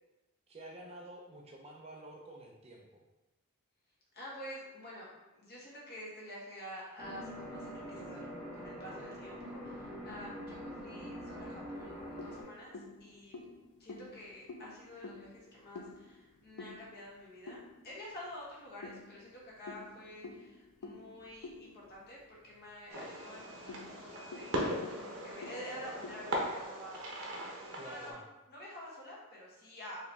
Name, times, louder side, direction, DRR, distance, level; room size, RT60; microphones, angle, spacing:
voice 1, 0.5-3.0 27.7-28.2, right 1 dB, 30° right, 0 dB, 0.5 m, -50 dB
voice 2, 4.1-5.1 5.3-13.4 13.8-27.1 27.8-28.2 28.5-30.1, equal, 45° left, -5 dB, 1.4 m, -49 dB
sound 1, 7.0-12.4, equal, 5° right, 0.9 m, -44 dB
sound 2, 11.7-18.1 18.8-22.7 23.0-23.1 23.5-27.1, left 3 dB, 85° left, 0.5 m, -50 dB
Fireworks, 22.9-28.1, equal, 65° right, 1.0 m, -39 dB
4.6 x 3.1 x 3.3 m, 1.0 s
head